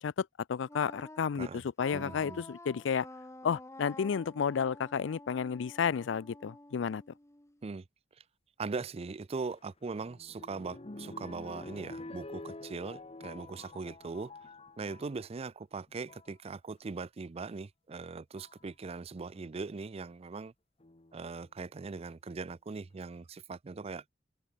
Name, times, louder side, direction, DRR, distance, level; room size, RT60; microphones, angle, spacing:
voice 1, 0.0-3.1 3.4-7.0, left 6 dB, 75° left, 0.4 m, -32 dB
Wind instrument woodwind instrument, 0.7-7.6, left 2 dB, 15° left, 1.7 m, -50 dB
voice 2, 1.9-2.4 7.6-7.8 8.6-14.3 14.8-20.5 21.1-24.0, right 4 dB, 35° right, 0.4 m, -40 dB
sound 1, 9.5-15.1 15.9-16.3 17.6-17.7 18.4-18.7 20.8-21.4 22.1-22.2 22.4-22.5, left 2 dB, 30° left, 1.2 m, -48 dB
head